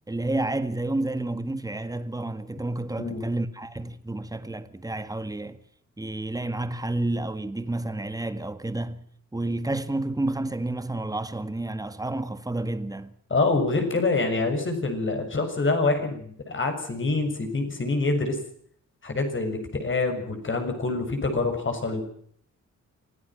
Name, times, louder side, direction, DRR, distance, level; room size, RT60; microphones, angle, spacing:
voice 1, 0.1-5.6 6.0-9.0 9.3-13.1, right 2 dB, 10° right, 1.8 m, -30 dB
voice 2, 13.3-18.4 19.0-22.1, left 3 dB, 40° left, 6.8 m, -26 dB
26.5 x 17.5 x 5.8 m
wide cardioid pair, 130°, 30 cm